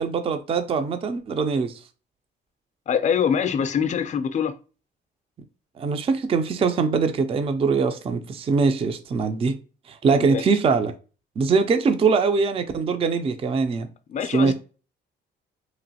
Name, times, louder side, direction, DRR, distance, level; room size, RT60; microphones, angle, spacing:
voice 1, 0.0-1.8 5.8-9.5 9.9-10.9 11.4-13.9 14.3-14.5, right 4 dB, 30° right, 0.3 m, -22 dB
voice 2, 2.9-4.5 10.0-10.4 14.1-14.5, left 7 dB, 40° left, 0.4 m, -24 dB
3.0 x 2.4 x 2.7 m
cardioid pair, 90°, 20 cm